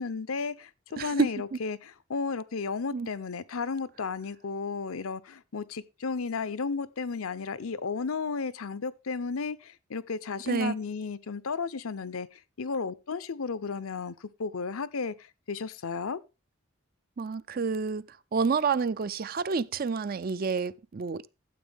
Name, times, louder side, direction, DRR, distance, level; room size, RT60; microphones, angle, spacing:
voice 1, 0.0-16.2, left 4 dB, 75° left, 0.7 m, -34 dB
voice 2, 1.0-1.3 2.9-3.1 10.5-10.8 17.2-21.2, right 5 dB, 40° right, 0.4 m, -29 dB
13.0 x 7.9 x 3.5 m
head